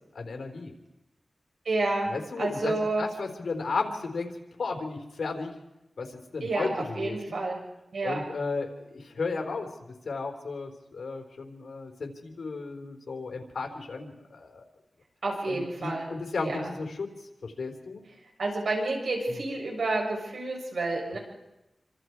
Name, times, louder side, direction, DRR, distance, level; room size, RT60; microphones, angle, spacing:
voice 1, 0.1-0.7 2.1-4.3 4.6-5.6 6.0-7.4 8.0-14.6 15.5-17.1 17.4-18.0 21.1-21.2, left 4 dB, 85° left, 4 dB, 4.1 m, -34 dB
voice 2, 1.6-2.1 2.4-3.0 6.4-7.6 7.9-8.2 15.2-16.7 18.4-21.2, right 2 dB, 80° right, 0 dB, 7.6 m, -29 dB
28.0 x 26.0 x 4.7 m, 0.94 s
wide cardioid pair, 120°, 0 cm